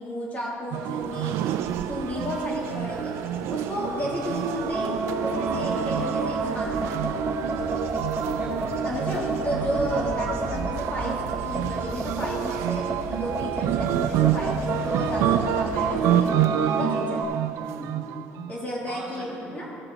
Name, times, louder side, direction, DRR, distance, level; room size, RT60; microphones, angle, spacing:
voice 1, 0.0-1.4 1.9-3.2 3.5-4.9 5.2-7.1 8.8-11.1 11.4-16.3 16.8-17.4 18.5-19.7, equal, 30° left, -4 dB, 2.6 m, -32 dB
sound 1, 0.7-18.5, right 11 dB, 80° right, 0.4 m, -28 dB
Bird / Insect / Wind, 1.0-16.0, right 2 dB, 60° right, 1.0 m, -40 dB
sound 2, 4.6-17.2, right 1 dB, 10° right, 0.8 m, -30 dB
voice 2, 8.2-9.0 17.5-18.0 18.9-19.8, right 2 dB, 40° right, -3 dB, 2.3 m, -40 dB
15.5 x 6.3 x 3.8 m, 2.4 s
cardioid pair, 120°, 5 cm